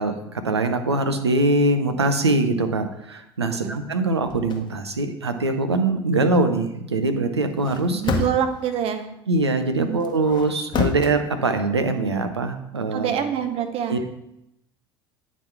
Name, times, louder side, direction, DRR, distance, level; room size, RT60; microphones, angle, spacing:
voice 1, 0.0-8.0 9.3-13.1 13.9-14.1, right 2 dB, 90° right, 7 dB, 0.6 m, -23 dB
sound 1, 4.2-4.6 7.5-8.6 10.0-11.1, left 5 dB, 35° left, 0.9 m, -28 dB
voice 2, 7.9-9.1 9.8-10.0 12.9-14.0, right 8 dB, 45° right, 7 dB, 0.8 m, -26 dB
9.0 x 4.0 x 4.4 m, 0.81 s
figure-of-eight pair, 70°, 14 cm